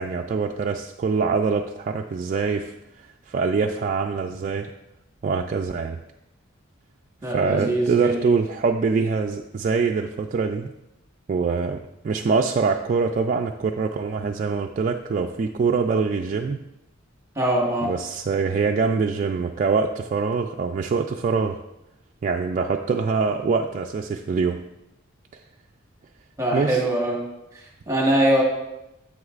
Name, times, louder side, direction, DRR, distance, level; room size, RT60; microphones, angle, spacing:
voice 1, 0.0-4.7 5.2-6.0 7.2-10.7 11.3-11.8 12.0-16.6 17.8-21.6 22.2-24.6 26.5-26.8, right 4 dB, 40° right, 2 dB, 0.3 m, -24 dB
voice 2, 7.2-8.3 17.3-17.9 26.4-27.2 27.5-28.4, right 1 dB, 15° right, -1 dB, 1.3 m, -23 dB
9.5 x 7.8 x 2.4 m, 0.91 s
head